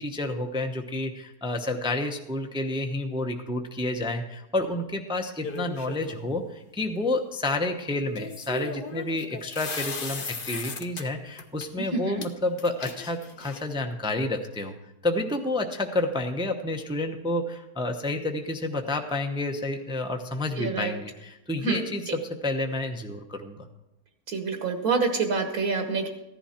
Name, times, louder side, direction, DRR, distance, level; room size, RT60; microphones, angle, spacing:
voice 1, 0.0-14.8 15.0-23.7, left 2 dB, 5° right, 4 dB, 0.5 m, -30 dB
sound 1, 5.4-6.2 8.2-11.0 11.4-11.7 12.2-12.3 12.6-13.8, left 3 dB, 40° left, 0.9 m, -36 dB
voice 2, 11.9-12.2 20.6-20.9 21.6-22.1 24.3-26.1, right 4 dB, 70° right, 5 dB, 1.6 m, -27 dB
15.0 x 11.0 x 4.3 m, 0.95 s
omnidirectional pair, 1.7 m